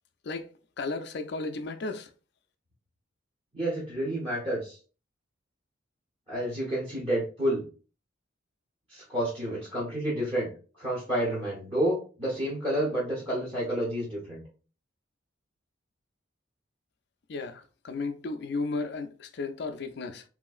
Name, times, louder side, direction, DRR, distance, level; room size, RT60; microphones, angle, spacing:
voice 1, 0.8-2.1 17.3-20.2, left 3 dB, 55° left, 0.4 m, -34 dB
voice 2, 3.5-4.8 6.3-7.6 8.9-10.5 10.8-14.4, right 1 dB, 30° right, 1.1 m, -29 dB
3.1 x 2.8 x 2.4 m
head